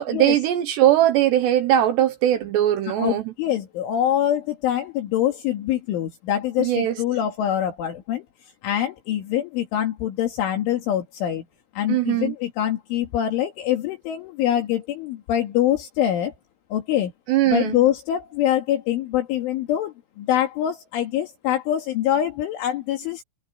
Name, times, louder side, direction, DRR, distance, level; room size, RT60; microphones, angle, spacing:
voice 1, 0.0-3.3 6.6-7.0 11.9-12.3 17.3-17.8, right 12 dB, 75° right, 2.7 m, -20 dB
voice 2, 2.9-8.2 8.6-11.4 11.8-16.3 16.7-17.1 17.5-23.2, left 11 dB, 70° left, 4.7 m, -24 dB
omnidirectional pair, 5.9 m